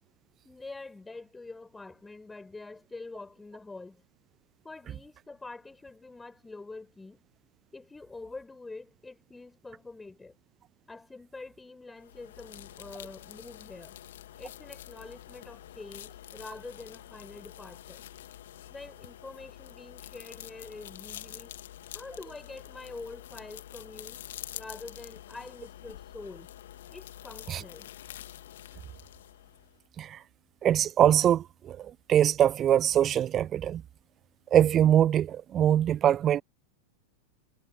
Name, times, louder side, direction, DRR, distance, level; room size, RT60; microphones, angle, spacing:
voice 1, 0.4-4.0 4.6-7.2 7.7-10.4 10.9-14.0 14.4-18.0 18.7-21.6 21.9-24.2 24.5-26.5 26.9-27.9, left 3 dB, 10° left, 6.4 m, -45 dB
sound 1, 12.0-29.8, left 12 dB, 60° left, 2.1 m, -47 dB
voice 2, 30.6-33.8 34.5-36.4, right 10 dB, 30° right, 0.4 m, -23 dB
figure-of-eight pair, 90°, 0 cm